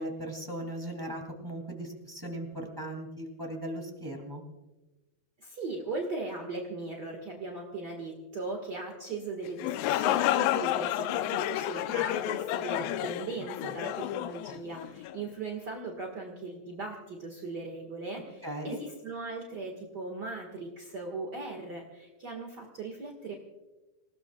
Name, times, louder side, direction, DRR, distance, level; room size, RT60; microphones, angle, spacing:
voice 1, 0.0-4.4 18.4-18.8, right 1 dB, 10° right, 2 dB, 1.6 m, -38 dB
voice 2, 5.4-23.3, right 3 dB, 55° right, 1 dB, 1.2 m, -38 dB
sound 1, 9.5-15.2, left 13 dB, 85° left, 2.7 m, -30 dB
27.0 x 18.5 x 2.4 m, 1.1 s
omnidirectional pair, 4.7 m